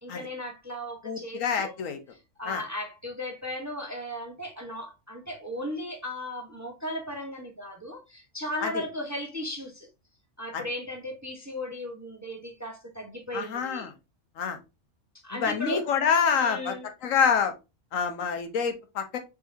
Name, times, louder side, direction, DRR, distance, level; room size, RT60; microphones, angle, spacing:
voice 1, 0.0-1.7 2.1-9.9 10.4-13.9 15.2-15.9 16.3-16.9, left 1 dB, 15° right, 0.7 m, -36 dB
voice 2, 1.0-2.0 2.5-2.6 8.6-8.8 10.5-10.6 13.3-13.9 14.4-14.6 15.4-16.8 17.0-17.5 17.9-19.2, left 6 dB, 80° left, 1.2 m, -26 dB
4.8 x 4.1 x 2.6 m
omnidirectional pair, 1.3 m